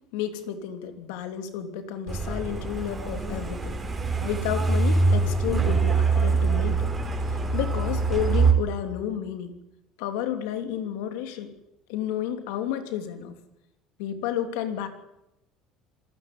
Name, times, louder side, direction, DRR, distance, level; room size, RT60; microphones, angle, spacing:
voice 1, 0.1-3.8 4.2-6.9 7.3-9.5 10.0-11.5 11.9-13.4 14.0-14.9, left 10 dB, 90° left, 7 dB, 2.9 m, -31 dB
Truck, 2.1-8.5, right 4 dB, 20° right, 4.6 m, -24 dB
27.0 x 14.0 x 9.4 m, 0.90 s
cardioid pair, 125°, 0 cm